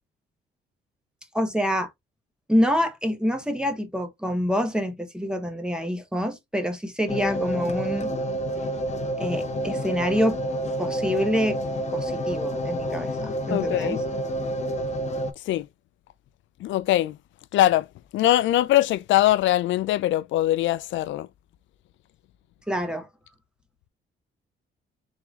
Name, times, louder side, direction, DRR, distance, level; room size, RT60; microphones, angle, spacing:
voice 1, 1.3-1.9 2.5-8.1 9.2-10.4 10.8-11.6 11.9-14.0 22.7-23.1, equal, 5° right, 1.0 m, -26 dB
sound 1, 7.1-15.3, equal, 35° left, 0.8 m, -29 dB
voice 2, 13.5-14.1 15.5-15.7 16.6-17.2 17.5-17.9 18.1-21.3, left 14 dB, 75° left, 0.4 m, -22 dB
4.7 x 3.6 x 2.4 m
cardioid pair, 90°, 20 cm